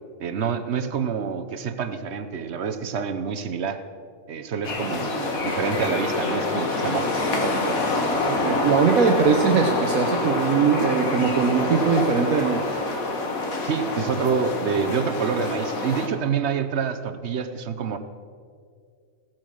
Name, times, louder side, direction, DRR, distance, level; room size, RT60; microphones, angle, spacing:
voice 1, 0.2-3.8 4.3-7.8 13.6-18.0, right 6 dB, 55° right, 9 dB, 1.0 m, -27 dB
sound 1, 4.6-16.1, left 2 dB, 85° left, 2.0 m, -26 dB
voice 2, 8.2-12.8, right 6 dB, 85° right, 3 dB, 1.3 m, -21 dB
16.5 x 8.7 x 6.2 m, 2.2 s
omnidirectional pair, 1.4 m